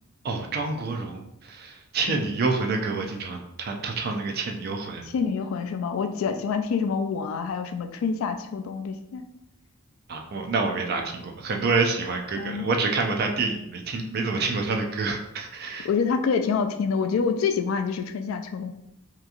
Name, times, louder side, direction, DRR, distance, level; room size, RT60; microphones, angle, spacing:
voice 1, 0.2-5.0 10.1-15.9, right 3 dB, 50° right, 2 dB, 0.4 m, -27 dB
voice 2, 5.1-9.2 12.4-12.7 15.8-18.7, left 5 dB, 75° left, 7 dB, 0.3 m, -27 dB
2.8 x 2.5 x 2.3 m, 0.81 s
head